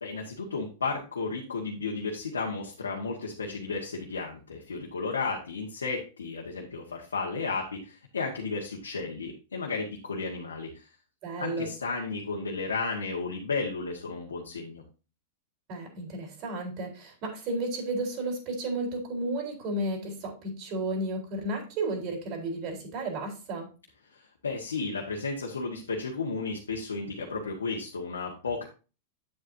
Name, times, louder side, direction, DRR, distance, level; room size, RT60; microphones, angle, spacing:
voice 1, 0.0-10.9 11.4-14.8 24.1-28.7, left 4 dB, 90° left, -1 dB, 1.6 m, -33 dB
voice 2, 11.2-11.7 15.7-23.7, right 2 dB, 50° right, 2 dB, 4.0 m, -33 dB
9.1 x 7.7 x 2.7 m, 0.33 s
hypercardioid pair, 105°, 0 cm